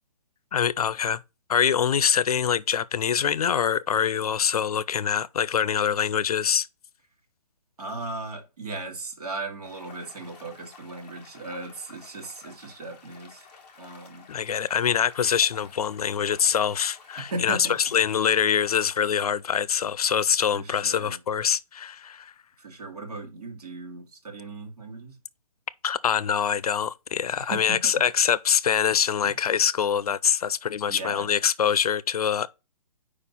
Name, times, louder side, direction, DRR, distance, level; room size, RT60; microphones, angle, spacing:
voice 1, 0.5-1.2 1.5-6.7 14.3-22.3 25.8-32.5, left 8 dB, 70° left, 0.5 m, -24 dB
voice 2, 7.8-13.5 13.8-14.3 17.2-18.0 20.5-21.2 22.6-25.2 27.4-28.0 29.2-29.4 30.9-31.3, right 2 dB, 80° right, 2.4 m, -37 dB
sound 1, 9.6-18.9, left 5 dB, 15° left, 0.9 m, -51 dB
4.9 x 4.4 x 5.4 m
hypercardioid pair, 180°, 20 cm